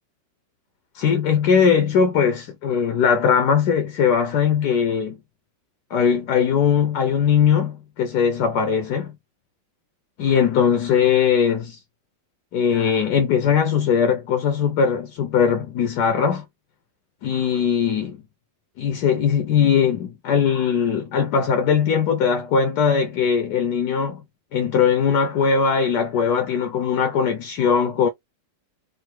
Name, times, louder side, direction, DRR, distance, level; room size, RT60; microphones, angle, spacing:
voice 1, 0.9-5.2 5.9-9.1 10.2-11.8 12.5-16.4 17.2-18.2 18.8-24.2 24.5-28.1, left 7 dB, 70° left, 1.3 m, -20 dB
3.7 x 2.7 x 4.4 m
omnidirectional pair, 1.9 m